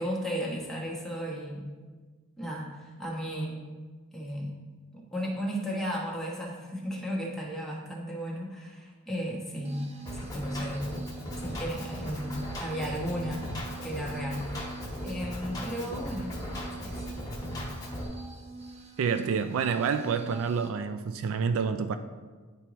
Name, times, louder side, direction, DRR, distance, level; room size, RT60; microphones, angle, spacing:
voice 1, 0.0-1.6 2.4-3.6 4.1-4.5 4.9-9.9 10.1-11.0 11.4-13.5 13.8-14.7 15.0-16.6 16.8-17.1, equal, ahead, -3 dB, 1.1 m, -34 dB
sound 1, 9.6-20.7, right 4 dB, 30° right, 0.6 m, -44 dB
Drum kit, 10.0-18.0, left 1 dB, 15° left, 1.3 m, -38 dB
voice 2, 19.0-21.9, right 6 dB, 65° right, 9 dB, 0.3 m, -28 dB
9.6 x 4.4 x 3.0 m, 1.4 s
head